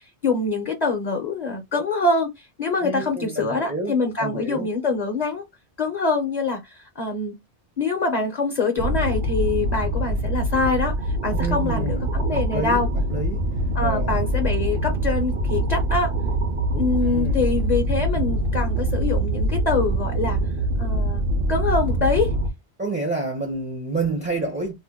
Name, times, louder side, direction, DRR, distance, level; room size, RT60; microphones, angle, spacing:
voice 1, 0.0-5.4 5.8-7.3 7.8-12.9 13.7-16.1 16.7-20.4 20.8-21.2 21.5-22.3, left 3 dB, 45° left, 0.7 m, -25 dB
voice 2, 2.8-4.7 11.3-12.8 13.1-13.4 13.8-14.3 17.0-17.4 22.8-24.7, right 3 dB, 15° right, 0.5 m, -29 dB
sound 1, 8.8-22.5, right 1 dB, 55° right, 0.8 m, -24 dB
2.7 x 2.1 x 3.4 m
omnidirectional pair, 1.1 m